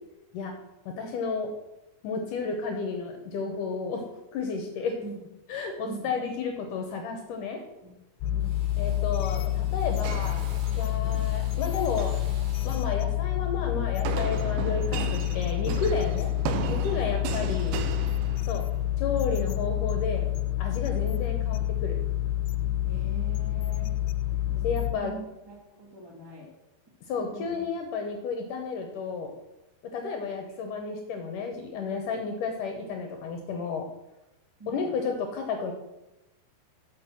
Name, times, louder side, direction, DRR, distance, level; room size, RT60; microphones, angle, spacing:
voice 1, 0.9-1.5 2.0-4.0 4.3-4.9 5.5-7.6 8.8-10.4 10.7-12.2 12.7-16.3 16.7-17.8 18.5-18.7 19.0-20.3 20.6-22.0 24.6-25.2 27.1-29.3 29.9-33.9 34.7-35.7, left 5 dB, 70° left, 4 dB, 2.1 m, -32 dB
Drill, 6.7-7.2 7.5-8.1 8.4-13.0, right 3 dB, 55° right, 2.8 m, -51 dB
sound 1, 8.2-24.9, left 13 dB, 85° left, 2.7 m, -28 dB
sound 2, 10.0-11.1 11.8-12.3 14.1-18.9, right 9 dB, 80° right, 2.6 m, -35 dB
voice 2, 10.8-11.2 17.0-17.8 21.0-21.2 22.8-23.9 24.5-24.6 24.9-26.5 27.1-27.6 34.6-35.0, right 2 dB, 15° right, -2 dB, 0.7 m, -44 dB
7.3 x 6.4 x 7.4 m, 0.96 s
omnidirectional pair, 4.5 m